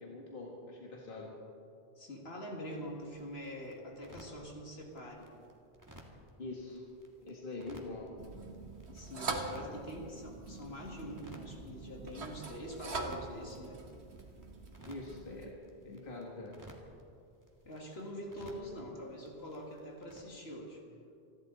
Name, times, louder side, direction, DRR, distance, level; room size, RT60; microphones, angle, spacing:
voice 1, 0.0-1.4 6.4-6.8 7.2-8.1 14.9-15.6 15.8-16.6, left 2 dB, 55° left, -2 dB, 1.8 m, -44 dB
voice 2, 2.0-5.3 8.9-13.9 17.7-20.8, equal, 70° left, 0 dB, 2.5 m, -45 dB
sound 1, 2.7-20.2, equal, 15° right, 1.9 m, -58 dB
sound 2, 8.2-15.5, right 3 dB, 80° right, 1.7 m, -43 dB
28.0 x 12.0 x 4.0 m, 2.5 s
omnidirectional pair, 1.1 m